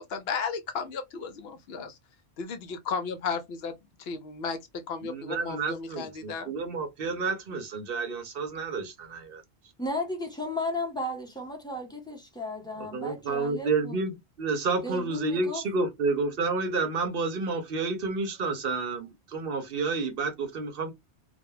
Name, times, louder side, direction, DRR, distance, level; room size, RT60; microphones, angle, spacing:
voice 1, 0.0-2.0 2.4-6.5, left 5 dB, 70° left, 0.8 m, -34 dB
voice 2, 5.0-9.4 12.9-14.1 14.4-20.9, right 4 dB, 65° right, 0.7 m, -30 dB
voice 3, 9.8-14.0 14.8-15.6, left 1 dB, 5° left, 0.7 m, -34 dB
2.2 x 2.1 x 3.1 m
omnidirectional pair, 1.1 m